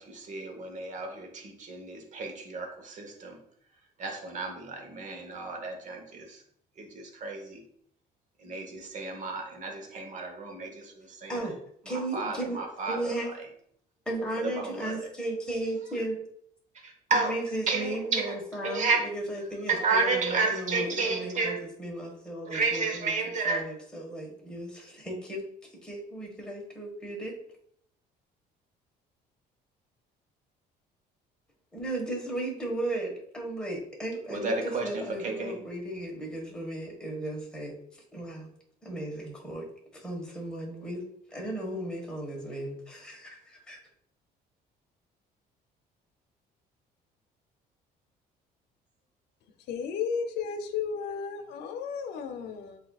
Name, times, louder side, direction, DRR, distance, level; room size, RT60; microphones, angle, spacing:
voice 1, 0.0-3.4 4.0-6.4 6.8-7.6 8.4-11.5 11.9-13.4 14.4-15.1 16.8-17.3 17.7-18.3 18.6-19.0 19.7-21.6 22.5-23.6 34.3-35.6, right 4 dB, 45° right, 3 dB, 1.1 m, -32 dB
voice 2, 11.8-12.6 12.9-13.3 14.0-16.3 17.1-23.1 23.4-25.5 25.8-27.3 31.7-34.5 34.8-37.8 38.1-38.5 38.8-39.7 39.9-41.0 41.3-43.8, right 1 dB, 5° left, -2 dB, 1.5 m, -35 dB
voice 3, 49.7-52.8, left 6 dB, 85° left, 6 dB, 0.7 m, -33 dB
7.7 x 2.7 x 2.4 m, 0.67 s
cardioid pair, 110°, 17 cm